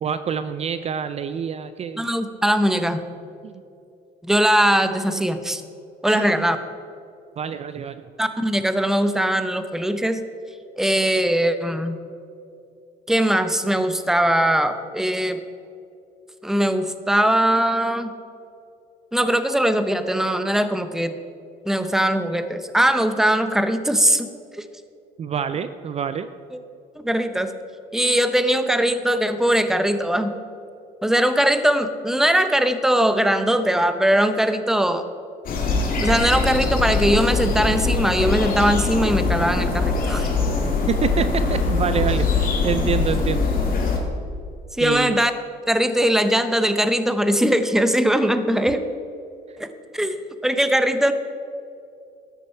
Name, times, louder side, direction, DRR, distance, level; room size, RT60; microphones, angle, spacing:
voice 1, 0.0-2.1 3.4-3.5 6.1-6.5 7.4-8.0 25.2-26.3 40.9-43.5 44.8-45.2, right 7 dB, 40° right, 11 dB, 0.4 m, -26 dB
voice 2, 2.0-3.0 4.2-5.6 6.0-6.6 8.2-10.2 10.8-12.0 13.1-15.4 16.4-18.1 19.1-21.1 21.7-24.3 24.6-24.7 26.5-26.6 27.0-27.5 27.9-30.3 31.0-35.1 36.0-40.3 44.8-45.3 45.7-48.9 49.6-49.7 49.9-51.1, right 1 dB, 5° right, 10 dB, 0.7 m, -20 dB
sound 1, 35.4-44.0, left 4 dB, 55° left, 2.3 m, -22 dB
13.0 x 9.2 x 4.5 m, 2.5 s
cardioid pair, 110°, 17 cm